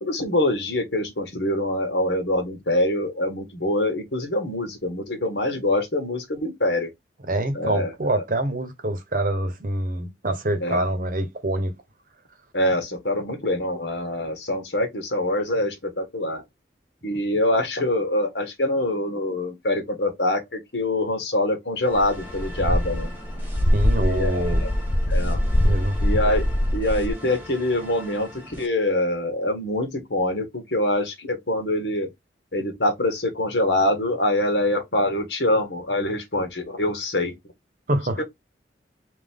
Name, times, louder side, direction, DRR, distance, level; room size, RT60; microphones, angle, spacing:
voice 1, 0.0-6.9 7.5-8.2 10.6-10.8 12.5-16.4 17.0-23.1 24.0-24.7 25.1-25.4 26.0-32.1 32.5-37.3 38.2-38.3, left 1 dB, 75° left, 1.5 m, -25 dB
voice 2, 7.3-11.8 23.7-24.6 25.6-26.0 37.9-38.2, right 1 dB, 50° right, 0.9 m, -25 dB
sound 1, 21.8-28.7, equal, 10° right, 1.3 m, -42 dB
sound 2, 21.9-27.1, left 1 dB, 25° left, 0.5 m, -23 dB
3.6 x 3.0 x 3.6 m
head